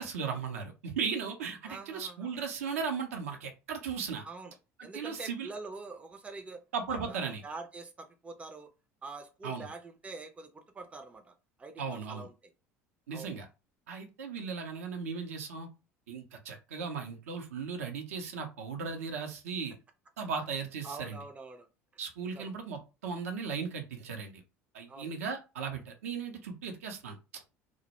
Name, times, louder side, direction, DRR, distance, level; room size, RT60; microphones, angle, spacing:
voice 1, 0.0-4.3 4.8-5.5 6.7-7.4 9.4-9.7 11.8-12.3 13.1-13.5 13.9-15.7 16.1-19.8 20.2-21.2 22.0-24.4 24.7-27.2, right 5 dB, 70° right, 4 dB, 0.5 m, -37 dB
voice 2, 1.6-2.4 4.2-4.5 4.8-6.6 6.9-8.7 9.0-11.3 11.6-12.5 13.1-13.3 20.8-21.7 22.3-22.5 24.9-25.1, right 3 dB, 15° right, 5 dB, 0.5 m, -45 dB
2.1 x 2.0 x 2.8 m, 0.28 s
figure-of-eight pair, 65°, 8 cm